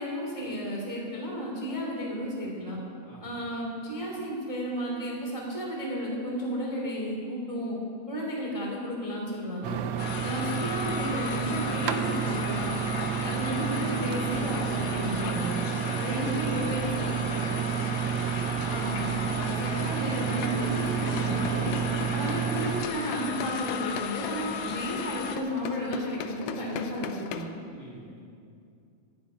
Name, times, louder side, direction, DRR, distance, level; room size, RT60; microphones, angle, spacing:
voice 1, 0.0-2.8 3.2-7.8 8.1-9.8 10.2-12.8 13.2-15.6 16.0-17.7 18.7-21.7 22.1-27.5, equal, 10° right, -3 dB, 2.2 m, -33 dB
voice 2, 3.0-3.4 27.7-28.2, right 1 dB, 30° right, -3 dB, 1.8 m, -49 dB
sound 1, 9.6-22.9, right 10 dB, 85° right, 1.5 m, -30 dB
sound 2, 10.0-25.4, left 7 dB, 70° left, 2.0 m, -36 dB
sound 3, 21.0-27.4, left 8 dB, 85° left, 2.1 m, -40 dB
10.5 x 9.6 x 9.7 m, 2.4 s
omnidirectional pair, 3.7 m